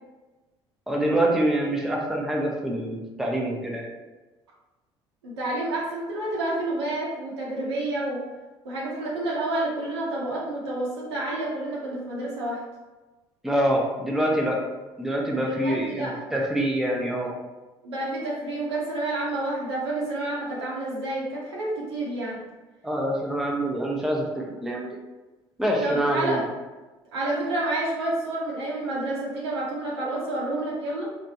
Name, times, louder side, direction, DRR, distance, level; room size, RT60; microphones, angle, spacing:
voice 1, 0.9-3.9 13.4-14.6 15.0-17.3 22.8-24.9 25.6-26.4, right 1 dB, ahead, -2 dB, 0.6 m, -25 dB
voice 2, 5.2-8.2 8.6-12.6 15.3-16.2 17.8-22.4 25.8-26.4 27.1-31.0, right 2 dB, 80° right, -5 dB, 0.8 m, -29 dB
3.3 x 2.0 x 2.8 m, 1.2 s
figure-of-eight pair, 55°, 14 cm